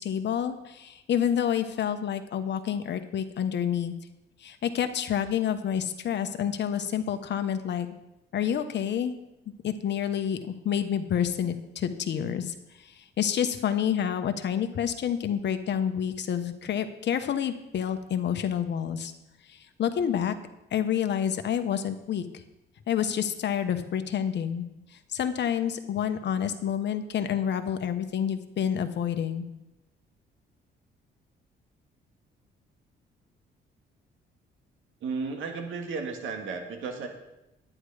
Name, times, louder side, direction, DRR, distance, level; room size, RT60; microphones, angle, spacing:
voice 1, 0.0-3.9 4.4-7.9 8.3-9.1 9.6-19.1 19.4-20.3 20.7-22.4 22.9-24.7 24.9-29.5, left 9 dB, 60° left, 9 dB, 1.1 m, -28 dB
voice 2, 35.0-37.1, right 4 dB, 80° right, 4 dB, 2.0 m, -34 dB
11.0 x 9.9 x 4.9 m, 0.94 s
cardioid pair, 90°, 20 cm